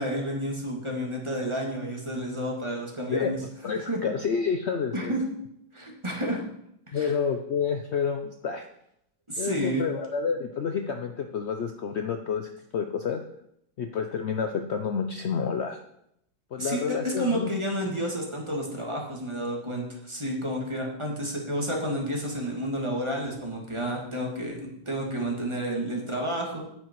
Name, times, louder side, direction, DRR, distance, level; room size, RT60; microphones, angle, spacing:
voice 1, 0.0-3.4 3.9-4.0 4.9-5.2 5.7-6.4 6.9-7.1 9.3-9.8 16.6-26.6, equal, 15° right, -1 dB, 2.2 m, -30 dB
voice 2, 3.6-5.2 6.9-8.7 9.4-13.2 13.8-15.8 16.5-17.5, left 6 dB, 70° left, 6 dB, 0.6 m, -29 dB
10.0 x 9.1 x 4.6 m, 0.77 s
omnidirectional pair, 2.0 m